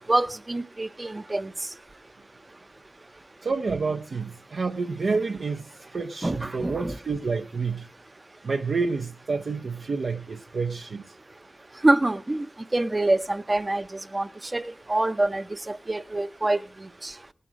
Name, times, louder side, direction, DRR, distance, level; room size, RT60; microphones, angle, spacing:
voice 1, 0.1-1.5 6.2-7.0 11.8-12.5 12.7-17.1, right 2 dB, 30° right, 0.6 m, -26 dB
voice 2, 3.4-7.9 8.4-11.2, right 4 dB, 70° right, 0.6 m, -29 dB
18.5 x 7.8 x 5.0 m
wide cardioid pair, 70°, 0 cm